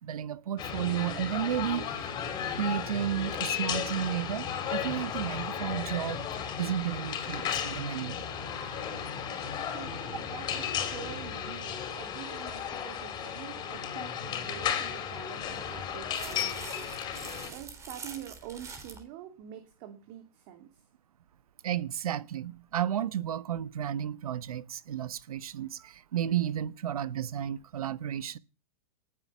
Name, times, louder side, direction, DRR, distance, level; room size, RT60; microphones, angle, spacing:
voice 1, 0.0-2.1 2.6-6.2 6.6-8.3 21.6-28.4, right 10 dB, 80° right, 1.2 m, -33 dB
sound 1, 0.6-17.5, left 8 dB, 25° left, 4.9 m, -34 dB
voice 2, 9.7-16.9 17.5-20.8, right 11 dB, 40° right, 2.8 m, -46 dB
sound 2, 15.5-19.0, right 4 dB, 15° right, 3.5 m, -45 dB
19.5 x 10.0 x 7.5 m
hypercardioid pair, 155°, 18 cm